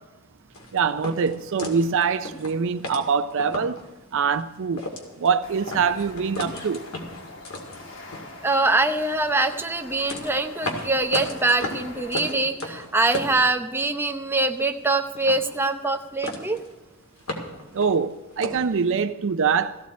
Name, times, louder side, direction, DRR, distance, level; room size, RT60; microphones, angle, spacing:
sound 1, 0.5-3.9 4.3-4.4 4.7-5.3 5.7-8.8 9.3-14.1 14.3-14.9 15.1-16.0 16.2-16.7 17.0-18.7, left 1 dB, 85° left, 2.2 m, -35 dB
voice 1, 0.7-3.8 4.1-4.8 5.2-6.8 17.7-19.8, right 6 dB, 65° right, 0.5 m, -24 dB
sound 2, 5.4-12.3, left 2 dB, 65° left, 1.7 m, -43 dB
voice 2, 8.4-16.6, right 2 dB, 10° right, 0.7 m, -24 dB
15.5 x 15.0 x 4.2 m
head